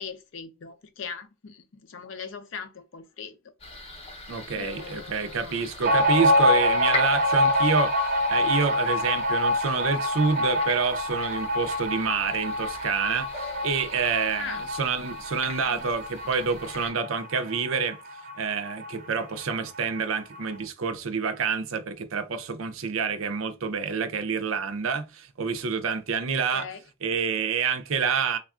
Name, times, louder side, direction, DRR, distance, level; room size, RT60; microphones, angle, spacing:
voice 1, 0.0-3.5 3.8-3.9 4.6-5.6 14.4-14.7 15.7-16.3 26.5-26.8, left 6 dB, 70° left, 0.5 m, -40 dB
sound 1, 3.6-16.9, left 2 dB, 30° left, 0.6 m, -41 dB
voice 2, 4.3-7.9 8.3-18.0 18.4-26.7 27.0-28.4, right 5 dB, 85° right, 0.5 m, -28 dB
sound 2, 5.8-19.0 19.2-19.3 19.6-20.4, left 1 dB, 45° right, 0.6 m, -26 dB
3.5 x 2.3 x 2.4 m
head